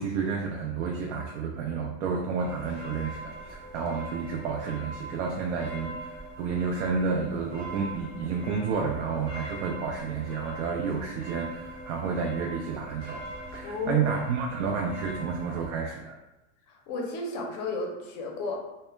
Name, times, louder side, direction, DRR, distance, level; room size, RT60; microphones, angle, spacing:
voice 1, 0.0-13.2 13.5-16.2, right 5 dB, 90° right, 0 dB, 0.5 m, -30 dB
sound 1, 2.4-15.7, right 1 dB, 40° right, 0.6 m, -42 dB
voice 2, 13.6-14.1 16.7-18.6, left 3 dB, 35° left, 0 dB, 0.5 m, -33 dB
2.2 x 2.0 x 3.1 m, 0.99 s
supercardioid pair, 165°, 34 cm